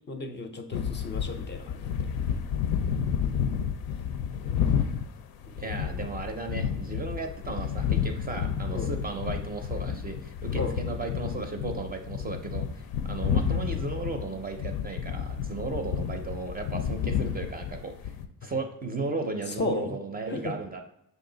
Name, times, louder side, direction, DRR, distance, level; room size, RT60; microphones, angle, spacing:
voice 1, 0.1-2.1 4.4-4.6 5.4-5.8 8.7-8.9 10.5-10.8 18.4-18.5 19.5-20.0 20.3-20.5, left 2 dB, 30° left, 5 dB, 0.5 m, -34 dB
sound 1, 0.7-18.3, left 8 dB, 85° left, 0.5 m, -30 dB
voice 2, 5.6-12.7 13.0-18.1 18.4-20.8, right 3 dB, 25° right, 5 dB, 0.4 m, -35 dB
5.5 x 2.4 x 3.8 m, 0.78 s
cardioid pair, 115°, 35 cm